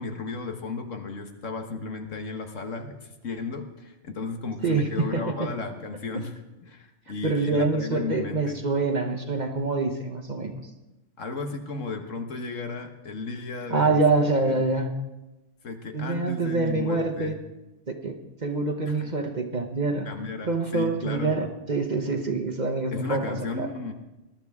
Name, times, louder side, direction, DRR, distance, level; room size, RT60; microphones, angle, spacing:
voice 1, 0.0-6.3 6.6-8.6 11.2-14.6 15.6-17.4 18.9-19.1 20.0-21.5 22.9-23.9, left 4 dB, 75° left, 5 dB, 1.6 m, -34 dB
voice 2, 4.6-5.5 7.2-10.6 13.7-14.9 15.9-17.3 17.9-18.2 18.4-20.1 20.4-23.7, right 3 dB, 35° right, 4 dB, 1.1 m, -26 dB
21.0 x 12.0 x 3.6 m, 1.0 s
omnidirectional pair, 1.3 m